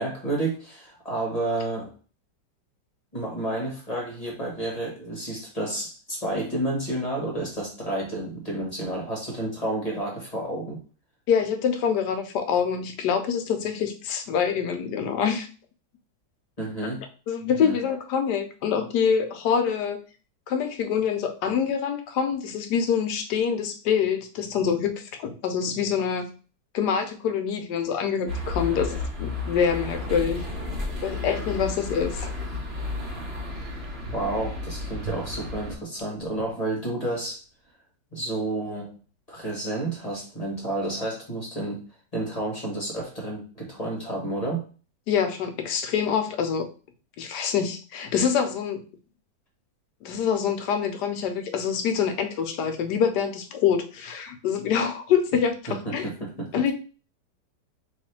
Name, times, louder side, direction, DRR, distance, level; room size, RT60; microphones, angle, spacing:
voice 1, 0.0-1.9 3.1-10.8 16.6-17.0 17.5-17.8 34.1-37.4 38.1-39.0 39.3-41.8 42.1-44.6 55.7-56.6, right 1 dB, 25° left, -3 dB, 1.2 m, -30 dB
voice 2, 11.3-15.5 17.3-20.0 20.5-26.3 26.7-30.5 31.0-32.3 45.1-46.7 47.2-48.8 50.0-56.1 56.5-56.7, left 7 dB, 75° left, 6 dB, 1.2 m, -25 dB
sound 1, 28.3-35.7, left 2 dB, 40° right, 1.4 m, -33 dB
sound 2, 32.7-32.8 33.3-33.4 33.8-34.6 35.0-37.3 37.5-37.6, right 7 dB, 70° right, 1.0 m, -42 dB
3.3 x 3.0 x 4.3 m, 0.36 s
omnidirectional pair, 1.9 m